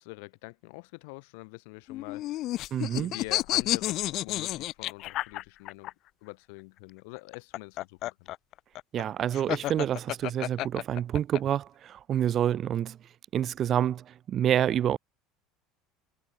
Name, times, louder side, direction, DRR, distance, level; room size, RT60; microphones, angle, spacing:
voice 1, 0.0-2.5 2.9-5.9 6.2-8.3, left 30 dB, 80° left, 5.0 m, -45 dB
sound 1, 1.9-5.9 7.2-11.4, left 15 dB, 50° left, 0.4 m, -31 dB
voice 2, 2.7-3.1 8.9-13.0 13.3-15.0, right 10 dB, 40° right, 0.3 m, -28 dB
supercardioid pair, 130°, 0 cm